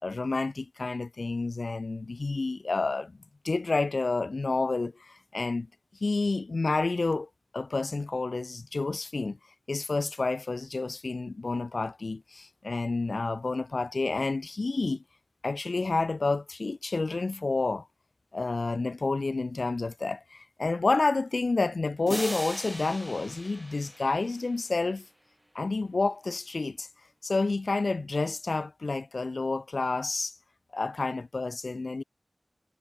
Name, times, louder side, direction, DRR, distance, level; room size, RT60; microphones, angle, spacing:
voice 1, 0.0-3.2 3.4-5.7 6.0-7.3 7.5-9.4 9.7-15.0 15.4-17.9 18.3-25.1 25.5-26.9 27.2-30.4 30.7-32.0, left 3 dB, 70° left, 4.3 m, -29 dB
sound 1, 22.1-24.7, equal, 10° right, 2.5 m, -39 dB
wide cardioid pair, 50°, 0 cm